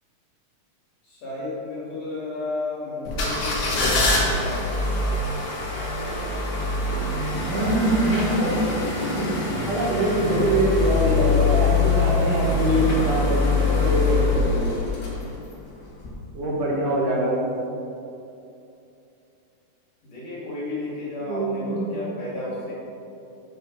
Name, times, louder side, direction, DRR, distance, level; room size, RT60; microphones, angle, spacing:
voice 1, 1.0-4.8 20.0-22.7, left 2 dB, 50° left, -7 dB, 3.3 m, -33 dB
sound 1, 3.1-15.5 16.0-16.1, left 3 dB, 85° left, 0.8 m, -24 dB
voice 2, 7.4-9.3 9.6-14.8 16.3-17.4 21.3-21.8, right 1 dB, 75° right, -4 dB, 3.2 m, -24 dB
7.1 x 6.6 x 5.2 m, 2.7 s
omnidirectional pair, 3.7 m